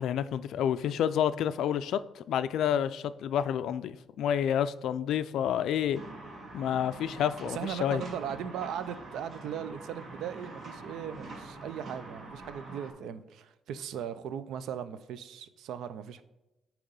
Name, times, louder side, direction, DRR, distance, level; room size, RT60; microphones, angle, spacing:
voice 1, 0.0-6.0 6.5-8.0, left 9 dB, 80° left, 0.3 m, -29 dB
sound 1, 5.9-12.9, right 2 dB, 55° right, 1.6 m, -45 dB
voice 2, 7.5-16.2, right 8 dB, 80° right, 0.4 m, -38 dB
8.6 x 3.0 x 5.4 m
cardioid pair, 90°, 0 cm